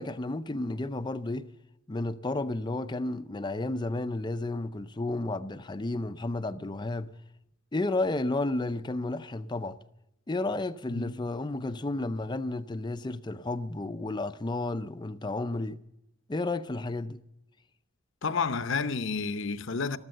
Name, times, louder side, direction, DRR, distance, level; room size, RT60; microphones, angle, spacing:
voice 1, 0.0-1.5 1.9-7.1 7.7-9.8 10.3-15.8 16.3-17.2, left 2 dB, 20° left, 0.5 m, -32 dB
voice 2, 18.2-20.0, left 5 dB, 60° left, 0.7 m, -30 dB
14.0 x 13.0 x 7.9 m
head